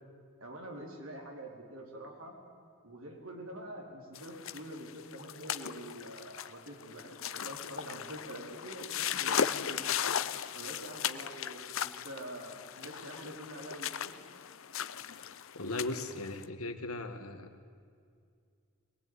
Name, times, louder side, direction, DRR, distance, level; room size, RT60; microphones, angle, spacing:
voice 1, 0.4-2.3 2.8-9.8 10.5-14.1, right 1 dB, 70° right, 1 dB, 4.4 m, -46 dB
sound 1, 4.2-16.4, left 8 dB, 70° left, 0.7 m, -37 dB
voice 2, 15.5-17.7, left 2 dB, 85° left, 7 dB, 1.9 m, -38 dB
23.0 x 19.5 x 9.8 m, 2.3 s
head